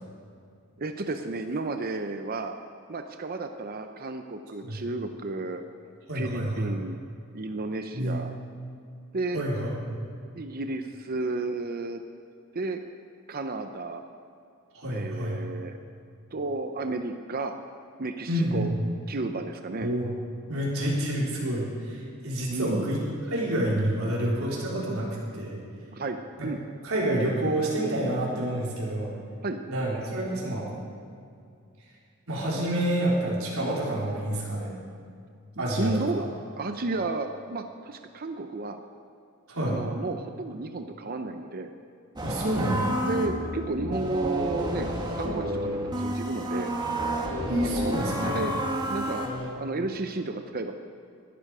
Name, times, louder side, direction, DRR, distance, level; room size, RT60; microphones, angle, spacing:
voice 1, 0.8-2.5 2.9-5.6 6.1-7.0 7.3-8.3 9.1-9.4 10.3-12.0 12.5-12.8 13.3-14.0 14.9-15.8 16.3-17.6 18.0-18.7 19.1-19.9 22.5-22.9 25.9-26.2 26.4-26.6 29.4-29.6 35.6-36.2 36.6-38.8 39.6-41.7 43.0-44.9 45.1-46.7 47.6-48.5 48.9-49.3 49.5-50.7, right 2 dB, 45° right, 6 dB, 0.7 m, -32 dB
voice 2, 6.1-6.7 7.9-8.2 9.3-9.8 14.7-15.4 18.3-18.9 19.8-20.1 20.5-23.0 23.3-25.6 26.4-26.5 26.8-29.1 29.7-30.7 32.3-34.7 35.6-36.3 39.5-39.8 42.2-42.9 47.5-48.4, right 1 dB, 80° right, -5 dB, 4.1 m, -28 dB
sound 1, 42.2-49.5, right 1 dB, 20° right, 1.8 m, -30 dB
20.0 x 12.0 x 4.9 m, 2.4 s
head